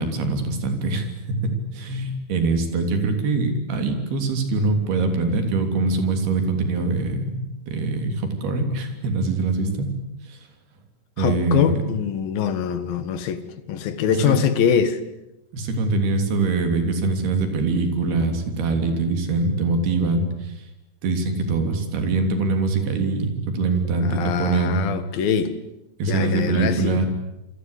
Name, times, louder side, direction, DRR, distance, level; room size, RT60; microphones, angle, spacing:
voice 1, 0.0-9.9 10.2-10.4 11.2-11.8 14.1-14.4 15.5-20.6 21.0-24.9 26.0-27.1, right 3 dB, 55° right, 5.0 m, -23 dB
voice 2, 11.2-13.4 13.7-15.0 24.0-25.6 26.1-27.0, left 8 dB, 60° left, 2.9 m, -23 dB
28.0 x 24.5 x 8.3 m
omnidirectional pair, 5.5 m